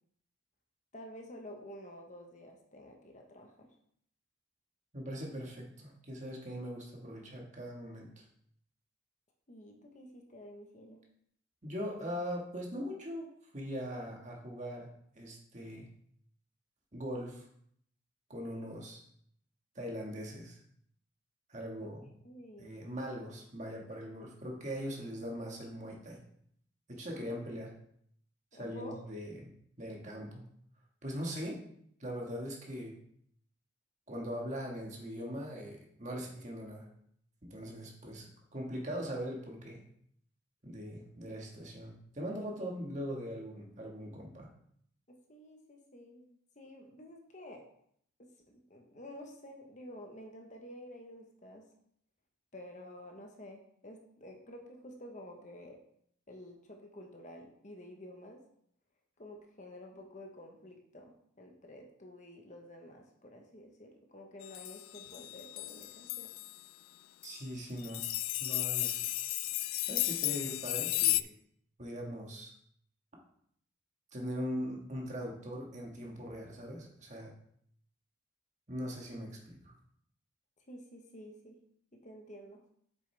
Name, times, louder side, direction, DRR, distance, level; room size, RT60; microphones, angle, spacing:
voice 1, 0.9-3.7 9.5-11.0 21.8-21.9 22.2-22.7 28.5-29.0 45.1-46.3 46.6-47.6 48.2-51.6 52.5-55.8 56.3-58.4 59.2-66.3 80.7-81.6 81.9-82.6, left 1 dB, 35° left, 2 dB, 1.0 m, -50 dB
voice 2, 4.9-8.2 11.6-14.9 15.1-15.9 16.9-17.4 18.3-19.0 19.7-20.6 21.5-22.1 22.6-26.2 26.9-27.7 28.5-29.5 29.8-30.4 31.0-31.6 32.0-33.0 34.1-36.9 37.4-39.8 40.6-44.5 67.2-68.1 68.4-69.2 69.9-71.3 71.8-72.5 74.1-77.3 78.7-79.8, equal, 35° right, -1 dB, 1.6 m, -41 dB
sound 1, 64.4-66.6 67.2-67.4 67.8-71.2, left 18 dB, 85° left, 0.3 m, -34 dB
7.8 x 6.6 x 3.4 m, 0.67 s
head